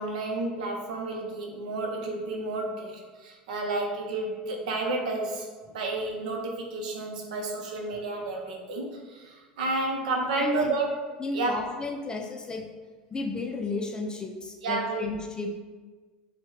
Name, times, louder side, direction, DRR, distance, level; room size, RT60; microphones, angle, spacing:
voice 1, 0.0-10.9 11.3-11.6 14.6-15.0, right 2 dB, 85° right, 1 dB, 0.5 m, -31 dB
voice 2, 10.4-10.7 11.2-12.7 13.1-15.5, left 3 dB, 20° left, 2 dB, 0.3 m, -33 dB
3.5 x 2.1 x 2.9 m, 1.4 s
hypercardioid pair, 90°, 4 cm